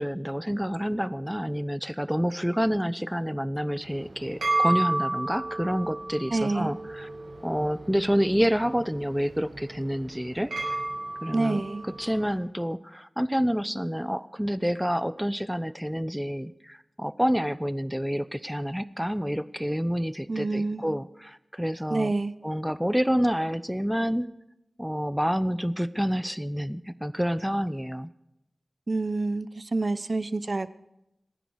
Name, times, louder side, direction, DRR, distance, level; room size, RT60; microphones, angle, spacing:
voice 1, 0.0-7.1 7.4-10.5 11.2-11.6 12.0-22.1 22.4-24.3 24.8-28.1, equal, 5° right, 15 dB, 0.8 m, -28 dB
sound 1, 3.8-12.3, right 2 dB, 85° right, 6.9 m, -32 dB
voice 2, 6.3-6.7 11.3-11.8 20.3-20.9 21.9-22.3 28.9-30.7, right 3 dB, 50° right, 15 dB, 0.8 m, -27 dB
27.5 x 10.0 x 4.8 m, 0.86 s
wide cardioid pair, 65°, 0 cm